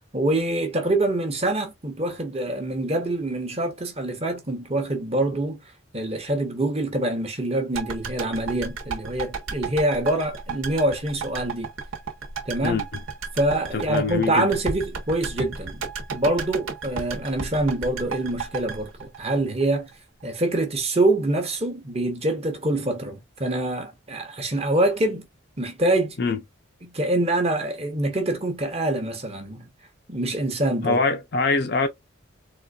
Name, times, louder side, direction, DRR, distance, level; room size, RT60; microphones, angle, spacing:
voice 1, 0.1-5.6 5.9-11.7 12.5-12.8 13.3-15.8 16.1-19.9 20.2-25.3 25.6-26.2 26.8-29.7 30.1-31.0, right 1 dB, 30° right, 0.9 m, -25 dB
sound 1, 7.7-19.9 20.2-20.3, right 5 dB, 85° right, 1.1 m, -33 dB
voice 2, 12.6-13.0 13.7-14.5 26.2-26.4 30.8-31.9, left 4 dB, 50° left, 0.6 m, -24 dB
3.9 x 2.5 x 2.4 m
head